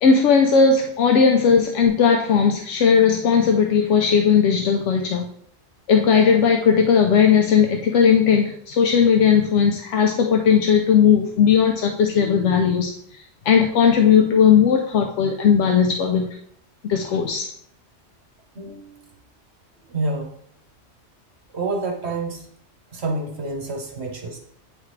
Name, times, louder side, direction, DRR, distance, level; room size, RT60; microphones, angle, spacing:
voice 1, 0.0-5.2 5.9-12.9 13.5-16.3 16.8-17.5, left 6 dB, 80° left, 3 dB, 0.9 m, -17 dB
voice 2, 18.5-19.1 19.9-20.3 21.5-22.5 22.9-24.4, right 2 dB, 65° right, 1 dB, 1.3 m, -28 dB
9.3 x 3.5 x 3.2 m, 0.67 s
omnidirectional pair, 1.2 m